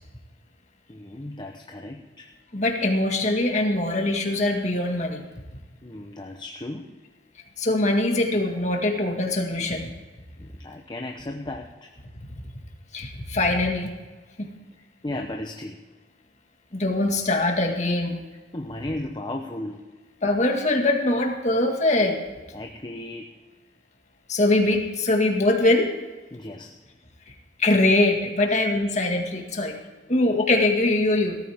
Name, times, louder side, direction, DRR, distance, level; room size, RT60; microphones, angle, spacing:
voice 1, 0.9-2.3 5.8-6.9 10.4-11.9 15.0-15.8 18.5-19.8 22.5-23.4 26.3-26.8 28.5-28.6 30.3-30.4, left 1 dB, 25° left, 3 dB, 0.8 m, -35 dB
voice 2, 2.5-5.2 7.6-9.9 12.9-13.9 14.4-14.5 16.7-18.2 20.2-22.2 24.3-25.9 27.3-27.4 27.6-29.7 30.1-31.4, left 2 dB, 40° left, 3 dB, 1.9 m, -22 dB
17.5 x 14.0 x 3.6 m, 1.3 s
head